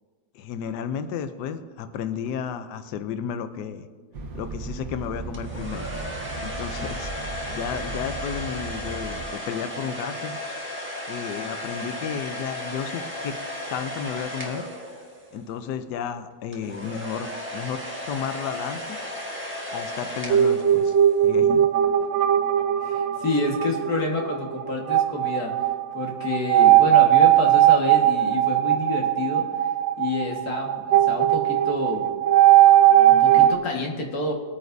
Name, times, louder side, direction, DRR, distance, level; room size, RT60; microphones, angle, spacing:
voice 1, 0.3-3.9 4.3-5.9 6.4-7.1 7.5-10.3 11.1-13.3 13.7-14.6 15.3-17.8 18.1-19.0 19.7-21.0 21.2-21.6, left 7 dB, 70° left, 9 dB, 1.2 m, -32 dB
sound 1, 4.1-9.3, right 3 dB, 55° right, 1.3 m, -36 dB
sound 2, 5.3-15.5 16.5-21.2, left 1 dB, 5° right, 1.3 m, -35 dB
sound 3, 20.3-33.5, right 12 dB, 85° right, 1.4 m, -19 dB
voice 2, 22.8-25.7 25.9-29.4 30.0-32.0 33.1-34.3, left 2 dB, 55° left, 0 dB, 2.1 m, -28 dB
22.5 x 9.2 x 2.7 m, 1.4 s
omnidirectional pair, 2.0 m